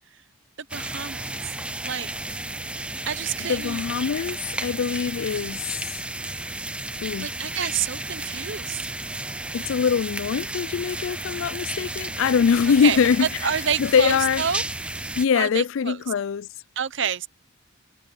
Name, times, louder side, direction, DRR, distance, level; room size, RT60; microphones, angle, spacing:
sound 1, 0.7-15.3, right 2 dB, 5° right, 0.5 m, -33 dB
voice 1, 0.7-1.5 1.8-2.1 3.1-3.8 7.2-8.9 12.8-14.6 15.4-16.0 16.8-17.3, right 8 dB, 55° right, 0.7 m, -28 dB
voice 2, 3.5-5.8 7.0-7.3 9.5-13.3 13.8-14.4 15.2-16.5, left 6 dB, 65° left, 0.3 m, -23 dB
head